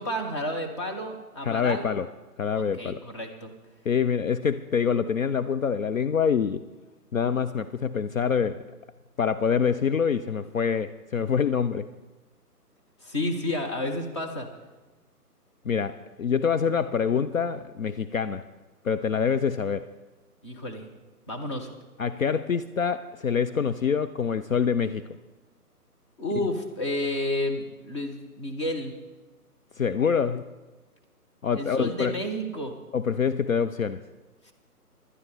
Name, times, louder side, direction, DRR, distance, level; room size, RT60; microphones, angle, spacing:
voice 1, 0.0-1.9 2.5-3.5 13.0-14.5 20.4-20.9 21.3-21.7 26.2-28.9 31.5-32.7 34.4-34.5, left 1 dB, 20° left, 2 dB, 0.8 m, -31 dB
voice 2, 1.4-2.1 2.4-3.0 3.9-6.6 7.1-8.7 9.2-11.9 15.7-18.5 18.8-19.9 22.0-25.1 29.8-30.5 31.4-32.2 32.9-34.0, left 6 dB, 60° left, 11 dB, 0.5 m, -25 dB
19.0 x 11.0 x 3.3 m, 1.2 s
figure-of-eight pair, 145°, 47 cm